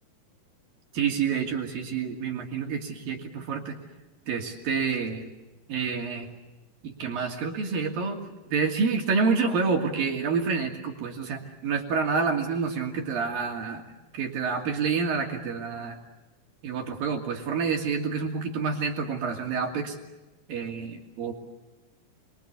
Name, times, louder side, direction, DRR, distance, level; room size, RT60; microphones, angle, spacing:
voice 1, 0.9-3.8 4.3-5.3 5.7-6.3 6.8-8.2 8.5-13.9 14.1-16.0 16.6-20.0 20.5-21.3, right 5 dB, 60° right, 2 dB, 4.1 m, -28 dB
30.0 x 24.0 x 8.3 m, 1.1 s
omnidirectional pair, 4.7 m